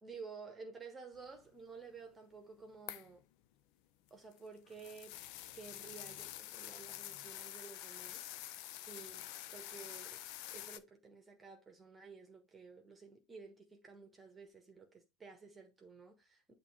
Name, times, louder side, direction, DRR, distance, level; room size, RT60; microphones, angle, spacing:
voice 1, 0.0-3.2 4.1-5.2 5.5-10.2 10.5-16.5, right 5 dB, 15° right, 1.3 m, -53 dB
sound 1, 2.9-3.2 4.1-10.8, left 13 dB, 45° left, 0.6 m, -47 dB
9.0 x 3.0 x 4.4 m
figure-of-eight pair, 90°, 0 cm